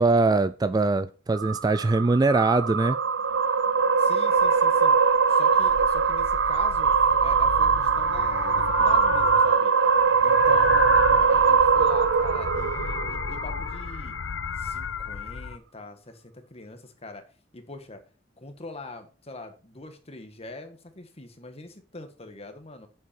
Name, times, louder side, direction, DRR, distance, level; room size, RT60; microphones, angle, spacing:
voice 1, 0.0-3.0, right 3 dB, 20° right, 0.3 m, -22 dB
sound 1, 1.3-13.8, right 5 dB, 80° right, 0.6 m, -22 dB
voice 2, 4.0-5.0 5.3-9.7 10.2-14.2 14.5-17.2 17.5-18.0 18.4-22.9, left 2 dB, 35° left, 1.6 m, -43 dB
sound 2, 4.4-4.5 4.9-5.2 5.5-9.6 9.9-15.6, left 6 dB, 90° left, 0.5 m, -33 dB
8.3 x 7.4 x 4.4 m
head